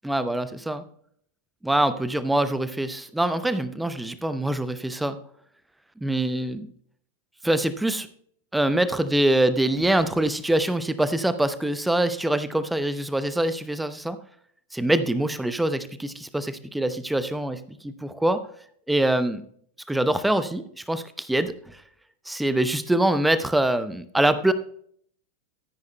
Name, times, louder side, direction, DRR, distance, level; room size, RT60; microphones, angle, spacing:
voice 1, 0.0-0.8 1.6-5.2 6.0-6.7 7.4-8.1 8.5-14.2 14.7-18.4 18.9-19.4 19.9-21.8 22.3-24.5, right 1 dB, 5° right, 13 dB, 0.7 m, -24 dB
14.0 x 9.6 x 2.2 m, 0.62 s
figure-of-eight pair, 90°, 0 cm